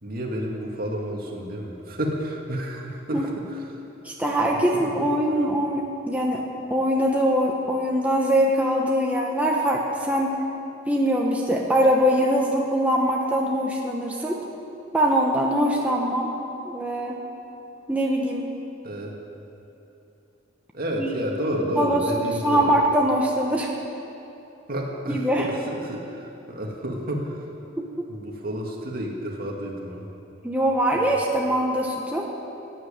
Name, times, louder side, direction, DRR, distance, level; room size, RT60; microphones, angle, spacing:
voice 1, 0.0-3.3 5.0-5.1 18.8-19.1 20.7-22.7 24.7-25.2 25.7-27.4 28.1-30.1 31.0-31.1, equal, 50° right, -1 dB, 2.3 m, -30 dB
voice 2, 4.0-6.4 6.7-10.4 10.9-14.4 14.9-16.3 16.6-17.2 17.9-18.5 21.0-21.1 21.6-23.7 25.1-25.5 27.8-28.0 30.4-32.3, equal, 10° right, -2 dB, 1.1 m, -23 dB
15.5 x 9.3 x 8.9 m, 2.9 s
head